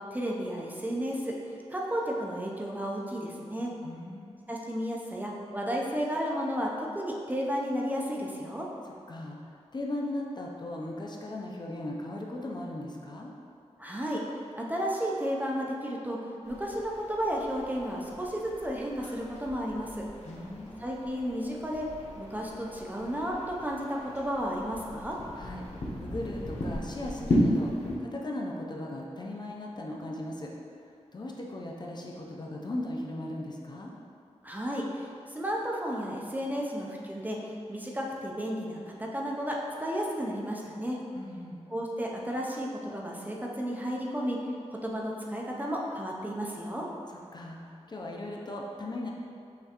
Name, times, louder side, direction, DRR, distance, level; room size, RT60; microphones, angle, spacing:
voice 1, 0.1-1.3 1.7-3.7 4.5-8.7 13.8-14.2 14.5-16.2 16.5-20.0 20.8-21.9 22.2-25.2 34.4-37.4 37.7-41.0 41.7-46.8, equal, 15° right, -2 dB, 0.5 m, -33 dB
voice 2, 3.8-4.4 8.8-13.3 20.2-20.8 25.4-25.7 26.0-30.5 30.8-33.9 41.1-41.6 47.1-49.1, left 1 dB, 40° left, -1 dB, 0.5 m, -38 dB
sound 1, 16.4-28.0, equal, 90° left, 0.8 m, -35 dB
5.7 x 3.1 x 2.9 m, 2.4 s
wide cardioid pair, 105°, 12 cm